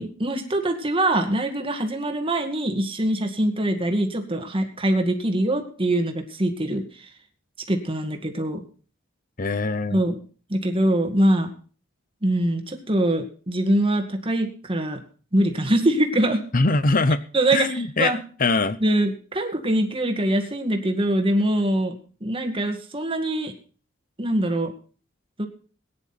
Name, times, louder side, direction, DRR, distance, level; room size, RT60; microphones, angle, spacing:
voice 1, 0.0-7.1 7.7-8.6 9.9-10.2 10.5-11.5 12.2-15.0 15.3-16.4 17.3-18.2 18.8-23.5 24.2-24.7 25.4-25.5, right 1 dB, 25° right, 5 dB, 2.0 m, -23 dB
voice 2, 9.4-10.0 16.5-17.2 17.5-18.8, left 3 dB, 45° left, 15 dB, 0.8 m, -22 dB
18.0 x 10.0 x 4.3 m, 0.39 s
head